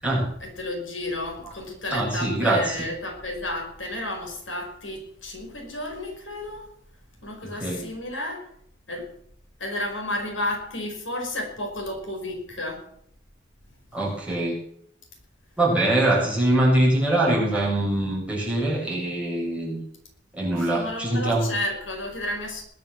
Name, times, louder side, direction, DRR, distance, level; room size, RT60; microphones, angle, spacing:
voice 1, 0.4-6.7 7.2-8.5 8.9-9.1 9.6-12.9 20.5-22.6, left 1 dB, 90° left, 1 dB, 5.4 m, -32 dB
voice 2, 1.9-2.9 7.4-7.8 13.9-14.6 15.6-19.8 20.3-21.5, right 1 dB, 5° right, -6 dB, 7.1 m, -23 dB
20.5 x 7.9 x 7.5 m, 0.69 s
head